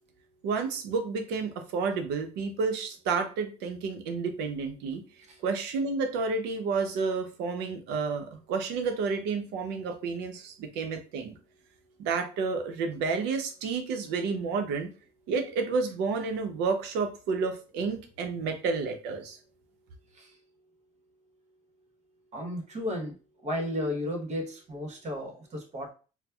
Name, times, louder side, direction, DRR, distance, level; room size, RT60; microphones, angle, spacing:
voice 1, 0.4-5.0 5.4-11.4 12.0-14.9 15.3-19.4, right 4 dB, 90° right, 6 dB, 0.6 m, -30 dB
voice 2, 22.3-23.2 23.4-25.9, left 1 dB, 45° right, 2 dB, 1.0 m, -34 dB
4.1 x 2.1 x 2.3 m, 0.35 s
cardioid pair, 110°, 17 cm